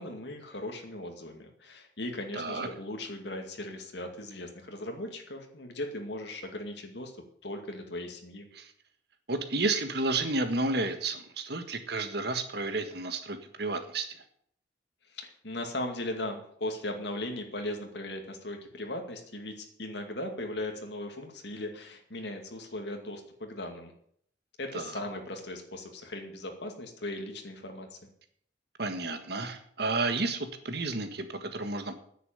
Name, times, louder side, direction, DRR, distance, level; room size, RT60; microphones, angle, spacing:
voice 1, 0.0-7.1 7.4-8.5 15.1-23.9 24.6-28.0, left 1 dB, 65° left, 3 dB, 2.3 m, -38 dB
voice 2, 2.3-2.7 8.5-8.7 9.3-14.2 24.7-25.0 28.8-32.0, right 3 dB, 60° right, 7 dB, 1.7 m, -31 dB
10.0 x 7.6 x 9.4 m, 0.65 s
head